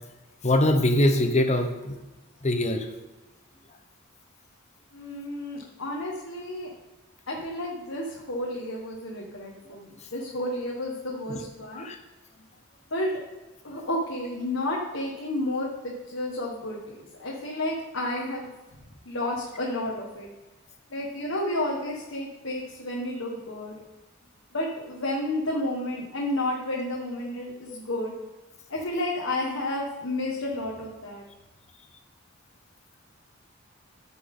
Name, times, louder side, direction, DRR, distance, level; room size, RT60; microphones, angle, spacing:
voice 1, 0.4-1.9 2.4-2.9 11.3-11.4 11.7-12.0, left 1 dB, 35° left, 6 dB, 1.1 m, -23 dB
voice 2, 4.9-6.7 7.3-11.9 12.9-13.2 13.6-18.5 19.0-20.3 20.9-23.8 24.5-28.1 28.7-31.2, left 1 dB, 75° left, -3 dB, 1.6 m, -31 dB
14.5 x 6.2 x 3.8 m, 1.1 s
head